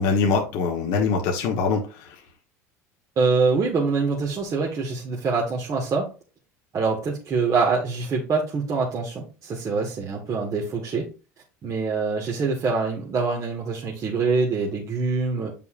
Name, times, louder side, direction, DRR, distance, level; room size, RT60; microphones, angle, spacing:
voice 1, 0.0-2.2, left 4 dB, 65° left, 1 dB, 1.3 m, -23 dB
voice 2, 3.2-6.1 6.7-11.1 11.6-15.5, right 4 dB, 40° right, -2 dB, 1.8 m, -24 dB
8.2 x 5.4 x 2.5 m, 0.33 s
hypercardioid pair, 85°, 8 cm